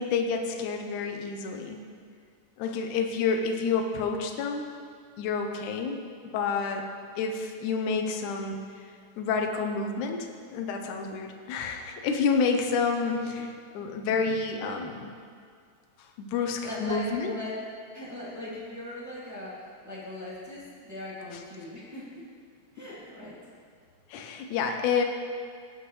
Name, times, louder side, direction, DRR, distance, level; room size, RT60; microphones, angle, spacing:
voice 1, 0.0-1.8 2.6-4.7 5.2-6.0 6.2-6.9 7.2-8.9 9.2-15.1 16.2-17.3 24.1-25.0, left 5 dB, 80° left, 4 dB, 2.2 m, -29 dB
voice 2, 16.6-17.1 17.3-17.5 17.9-22.2 22.7-23.4, left 1 dB, 5° right, -8 dB, 1.7 m, -40 dB
17.5 x 6.5 x 3.2 m, 2.1 s
omnidirectional pair, 3.5 m